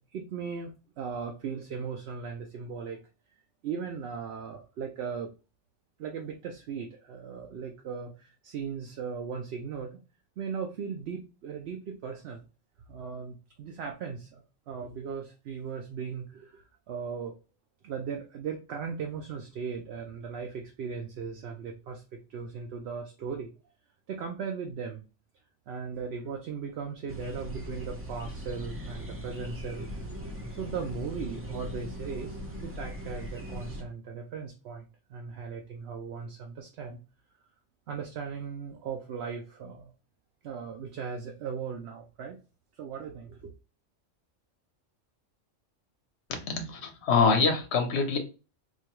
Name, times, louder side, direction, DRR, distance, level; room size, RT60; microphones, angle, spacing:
voice 1, 0.0-3.0 3.6-5.3 6.0-10.0 10.4-12.4 12.9-17.3 17.8-23.5 24.1-25.0 25.7-29.9 30.5-37.0 37.9-39.9 40.4-42.4 42.8-43.5, right 6 dB, 65° right, 2 dB, 0.7 m, -38 dB
sound 1, 27.1-33.8, equal, 15° right, 0.4 m, -39 dB
voice 2, 46.3-48.2, left 5 dB, 60° left, 4 dB, 1.0 m, -25 dB
4.3 x 2.3 x 3.0 m, 0.32 s
omnidirectional pair, 1.3 m